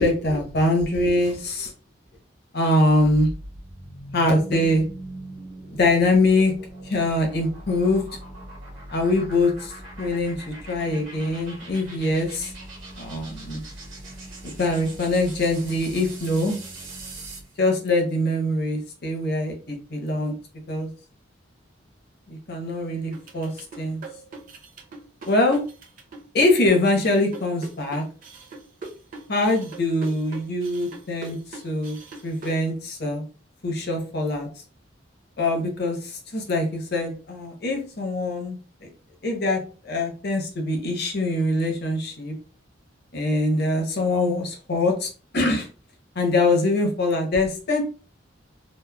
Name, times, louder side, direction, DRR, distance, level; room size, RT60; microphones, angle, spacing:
voice 1, 0.0-1.7 2.5-3.3 4.1-4.8 5.8-6.5 6.8-8.0 8.9-9.7 10.0-12.5 13.0-13.6 14.6-16.6 17.6-20.3 20.7-20.9 22.3-23.5 23.8-24.0 25.3-25.6 26.3-28.0 29.3-32.0 32.2-33.2 33.6-34.5 35.4-38.6 39.2-42.3 43.1-45.7 46.1-47.8, left 2 dB, 55° left, 2 dB, 0.7 m, -23 dB
sound 1, 2.9-17.5, right 1 dB, 75° right, 1.2 m, -40 dB
sound 2, 23.1-32.6, right 3 dB, 45° right, 0.6 m, -41 dB
2.9 x 2.0 x 2.2 m, 0.37 s
head